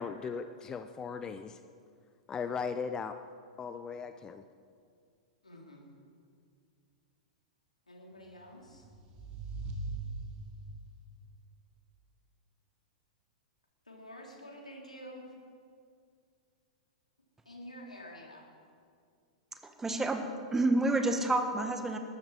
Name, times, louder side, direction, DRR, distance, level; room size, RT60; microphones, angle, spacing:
voice 1, 0.0-1.6 2.3-3.2 3.6-4.5, left 5 dB, 20° left, 10 dB, 0.6 m, -37 dB
voice 2, 5.4-5.9 7.9-8.8 13.9-15.3 17.4-18.4, equal, 80° left, 0 dB, 3.3 m, -48 dB
sound 1, 8.5-10.8, right 3 dB, 35° right, 2.3 m, -40 dB
voice 3, 19.6-20.2 20.5-22.0, right 2 dB, 10° right, 6 dB, 1.4 m, -29 dB
20.5 x 12.5 x 4.8 m, 2.2 s
figure-of-eight pair, 100°, 4 cm